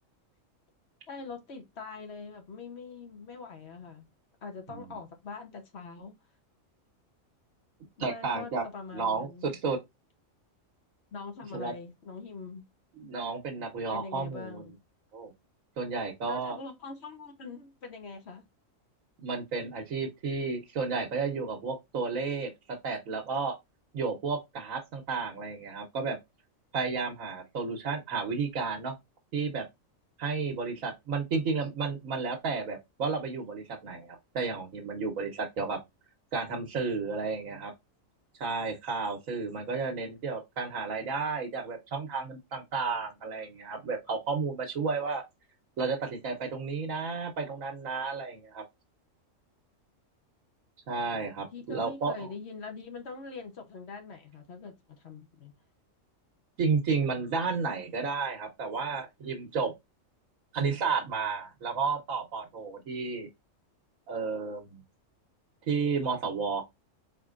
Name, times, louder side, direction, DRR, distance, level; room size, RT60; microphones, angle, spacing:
voice 1, 1.1-4.1 4.4-6.1 8.0-9.6 11.1-12.6 13.9-14.8 16.2-18.4 51.2-55.5, left 4 dB, 55° left, 1.2 m, -43 dB
voice 2, 8.0-8.6 8.9-9.8 11.5-11.7 13.0-14.7 15.1-15.3 15.8-16.6 19.2-22.5 22.8-23.5 23.9-26.2 26.7-29.0 29.3-29.6 30.2-35.8 36.3-37.7 38.4-45.2 45.8-48.6 50.9-52.3 56.6-59.7 60.5-63.3 64.1-64.8 65.7-66.6, right 4 dB, 85° right, 1.4 m, -32 dB
4.3 x 4.1 x 2.5 m
omnidirectional pair, 1.4 m